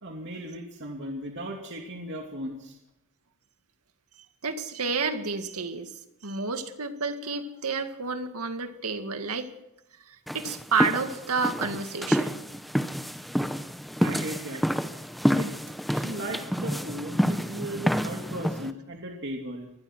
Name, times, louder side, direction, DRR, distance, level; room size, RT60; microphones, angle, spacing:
voice 1, 0.0-2.8 14.0-14.6 15.4-15.5 15.9-19.7, right 1 dB, 55° right, 1 dB, 2.8 m, -36 dB
voice 2, 4.4-5.9 6.2-9.5 10.1-12.4, right 4 dB, 85° right, 7 dB, 2.1 m, -30 dB
sound 1, 10.3-18.7, equal, ahead, 0.9 m, -28 dB
24.5 x 19.5 x 6.2 m, 0.89 s
head